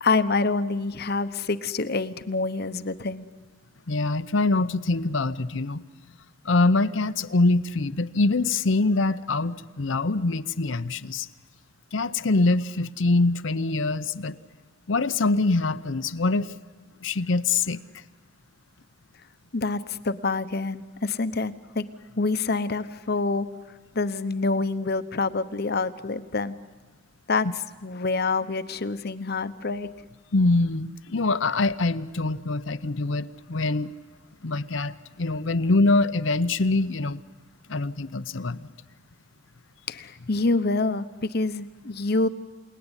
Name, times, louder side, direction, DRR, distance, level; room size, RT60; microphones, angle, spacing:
voice 1, 0.0-3.3 19.5-21.9 22.2-23.5 23.9-26.5 27.3-27.5 27.8-29.9 39.9-42.3, left 3 dB, 55° left, 12 dB, 1.0 m, -26 dB
voice 2, 3.9-5.8 6.4-11.3 11.9-14.4 14.9-16.5 17.0-17.8 30.3-33.9 34.4-37.2 37.7-38.7, left 3 dB, 75° left, 13 dB, 0.8 m, -24 dB
28.5 x 19.0 x 9.9 m, 1.3 s
head